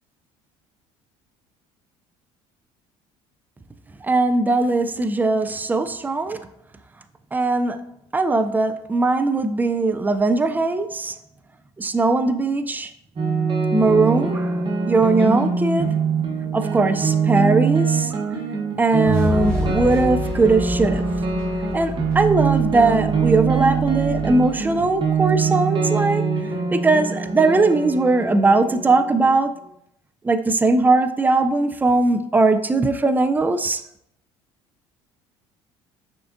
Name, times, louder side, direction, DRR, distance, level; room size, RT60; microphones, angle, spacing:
voice 1, 4.0-6.4 7.3-11.1 11.8-12.9 13.7-16.0 16.5-18.2 18.8-21.1 21.7-26.2 26.7-29.6 30.2-33.8, right 3 dB, 10° right, 0.3 m, -20 dB
sound 1, 13.2-29.3, right 5 dB, 35° right, 0.9 m, -23 dB
sound 2, 19.0-25.2, left 1 dB, 5° left, 1.4 m, -30 dB
6.3 x 2.5 x 2.5 m
supercardioid pair, 75°, 14 cm